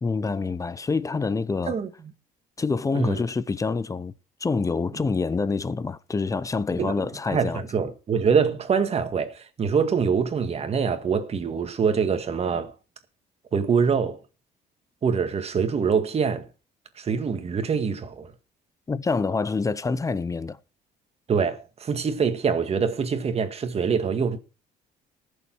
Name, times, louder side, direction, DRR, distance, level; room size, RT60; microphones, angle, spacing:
voice 1, 0.0-1.7 2.6-4.1 4.4-7.6 18.9-20.6, left 4 dB, 20° left, 0.7 m, -26 dB
voice 2, 2.9-3.2 6.8-6.9 7.3-12.7 13.5-14.2 15.0-16.5 17.0-18.3 21.3-24.4, right 6 dB, 35° right, 1.9 m, -24 dB
19.0 x 7.2 x 4.6 m
cardioid pair, 110°, 17 cm